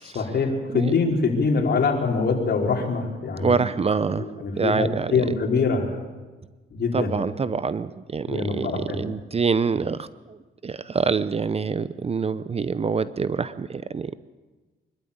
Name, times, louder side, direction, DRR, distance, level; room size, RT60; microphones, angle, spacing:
voice 1, 0.0-3.6 4.2-5.9 6.7-7.1 8.3-9.0, left 4 dB, 55° left, 1 dB, 4.5 m, -24 dB
voice 2, 3.4-5.2 6.9-10.4 10.6-14.1, right 5 dB, 30° right, 15 dB, 0.7 m, -26 dB
24.5 x 12.5 x 8.8 m, 1.3 s
cardioid pair, 90°, 20 cm